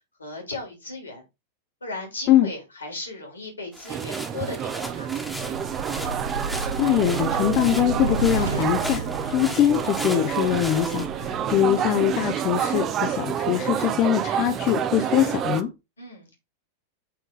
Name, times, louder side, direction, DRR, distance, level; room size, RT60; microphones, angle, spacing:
voice 1, 0.2-1.2 1.8-5.3 16.0-16.4, left 3 dB, 75° left, 3.4 m, -36 dB
sound 1, 3.7-11.1, equal, ahead, 1.5 m, -37 dB
sound 2, 3.9-15.6, right 9 dB, 30° right, 0.7 m, -28 dB
sound 3, 4.6-12.8, right 3 dB, 70° right, 1.4 m, -33 dB
voice 2, 6.8-15.7, left 11 dB, 40° left, 0.8 m, -22 dB
8.5 x 4.0 x 4.0 m
figure-of-eight pair, 90°, 0 cm